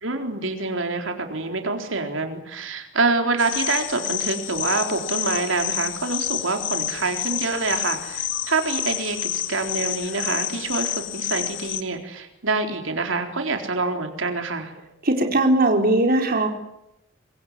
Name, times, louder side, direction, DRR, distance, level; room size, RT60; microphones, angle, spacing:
voice 1, 0.0-14.7, right 3 dB, 85° right, 5 dB, 4.0 m, -26 dB
sound 1, 3.4-11.8, left 12 dB, 70° left, 1.8 m, -29 dB
voice 2, 15.0-16.5, right 2 dB, 50° right, 3 dB, 4.1 m, -19 dB
26.0 x 23.0 x 9.7 m, 0.85 s
head